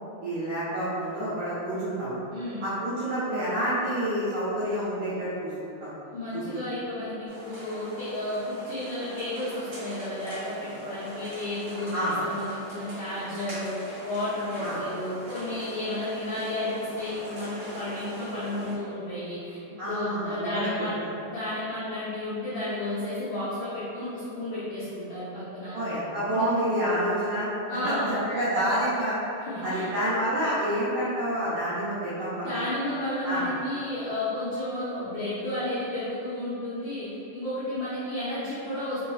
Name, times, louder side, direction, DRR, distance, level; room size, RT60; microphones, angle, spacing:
voice 1, 0.2-2.2 2.6-5.9 11.9-12.1 14.6-14.7 19.8-20.7 25.7-27.5 27.8-29.2 29.6-32.6 33.2-33.4, right 1 dB, 85° right, -12 dB, 1.6 m, -28 dB
voice 2, 2.3-2.7 6.1-13.7 14.0-20.9 21.2-25.7 26.3-26.4 27.7-28.2 29.4-29.9 32.4-37.1 37.3-39.0, left 1 dB, 80° left, -12 dB, 1.7 m, -32 dB
sound 1, 7.3-18.8, equal, 65° right, 1.1 m, -42 dB
6.0 x 3.1 x 2.3 m, 2.8 s
omnidirectional pair, 4.8 m